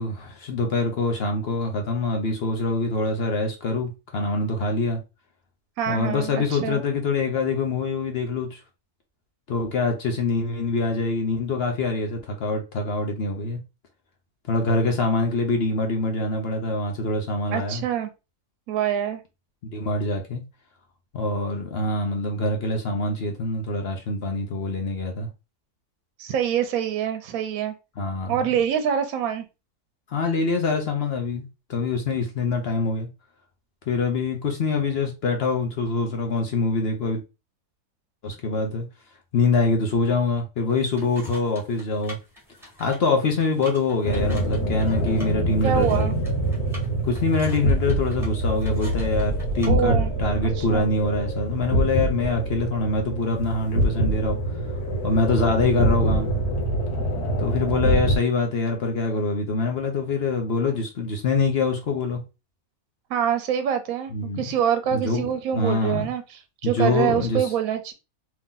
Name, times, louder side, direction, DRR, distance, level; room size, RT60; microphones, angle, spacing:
voice 1, 0.0-5.0 5.9-8.6 9.5-13.6 14.5-17.8 19.6-20.4 21.1-25.3 28.0-28.4 30.1-33.1 33.9-37.2 38.2-38.8 39.3-42.2 42.8-46.1 47.0-54.4 55.0-56.3 57.4-62.2 64.1-64.4 64.9-66.1 66.6-67.5, left 3 dB, 55° left, 0.8 m, -25 dB
voice 2, 5.8-6.8 17.5-18.1 18.7-19.2 26.2-27.7 28.3-29.4 45.6-46.1 49.7-50.1 50.6-50.9 63.1-66.2 66.6-67.9, right 9 dB, 75° right, 1.0 m, -25 dB
sound 1, 40.7-49.7, left 1 dB, ahead, 1.2 m, -46 dB
sound 2, 44.0-58.2, right 1 dB, 80° left, 1.4 m, -25 dB
3.0 x 2.8 x 3.7 m
omnidirectional pair, 1.6 m